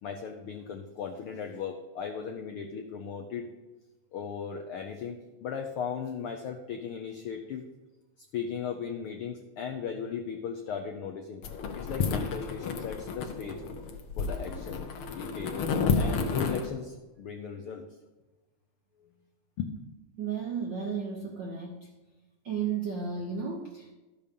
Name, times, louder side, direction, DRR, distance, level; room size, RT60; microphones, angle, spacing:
voice 1, 0.0-3.5 4.1-7.6 8.3-11.4 11.7-13.6 14.2-14.8 15.1-15.6 16.0-17.9 19.0-19.1 19.6-19.8, left 7 dB, 80° left, 4 dB, 1.2 m, -37 dB
sound 1, 11.4-16.7, left 5 dB, 65° left, 1.5 m, -31 dB
voice 2, 20.2-21.9 22.4-23.9, right 6 dB, 80° right, 2 dB, 1.0 m, -33 dB
12.5 x 7.0 x 5.2 m, 1.1 s
omnidirectional pair, 3.4 m